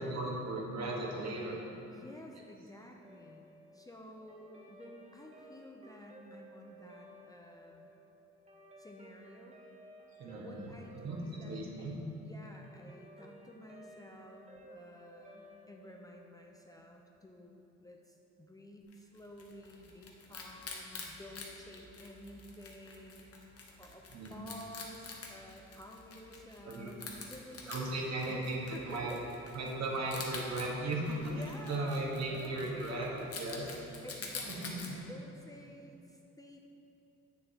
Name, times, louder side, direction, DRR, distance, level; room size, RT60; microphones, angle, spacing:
voice 1, 0.0-1.6 10.2-10.6 11.0-11.2 11.4-11.9 24.1-24.4 26.6-26.9 27.7-29.1 29.5-31.3 31.6-33.1 33.4-33.7 34.4-35.0, right 2 dB, 60° right, -2 dB, 1.4 m, -36 dB
voice 2, 1.9-3.5 3.7-7.9 8.8-9.6 10.3-23.3 23.8-24.0 24.3-29.6 31.2-32.0 32.3-36.6, left 1 dB, 10° left, 0 dB, 0.5 m, -52 dB
Guitar, 3.0-17.6, right 1 dB, 20° right, 0.9 m, -56 dB
Wild animals, 18.9-34.9, left 3 dB, 50° left, 1.1 m, -48 dB
7.7 x 7.0 x 2.9 m, 2.8 s
cardioid pair, 90°, 30 cm